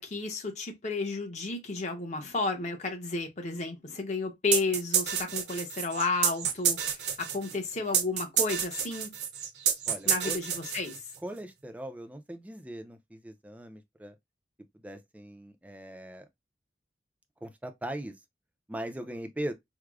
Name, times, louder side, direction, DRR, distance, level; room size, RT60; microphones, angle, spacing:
voice 1, 0.0-9.1 10.1-11.0, left 3 dB, 40° left, 0.8 m, -32 dB
sound 1, 4.5-11.2, right 8 dB, 70° right, 0.7 m, -29 dB
voice 2, 9.9-10.4 11.2-14.2 14.7-16.3 17.4-18.1 18.7-19.5, right 1 dB, 10° right, 0.4 m, -39 dB
4.6 x 2.0 x 2.3 m
head